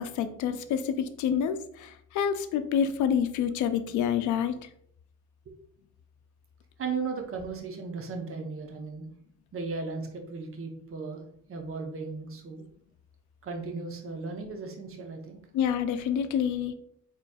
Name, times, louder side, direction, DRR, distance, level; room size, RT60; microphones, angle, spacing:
voice 1, 0.0-4.7 15.5-16.7, left 8 dB, 75° left, 10 dB, 0.5 m, -28 dB
voice 2, 6.8-9.1 9.5-11.2 11.5-12.6 13.4-15.4, right 4 dB, 45° right, 3 dB, 0.9 m, -36 dB
4.2 x 3.1 x 2.3 m, 0.68 s
cardioid pair, 90°, 30 cm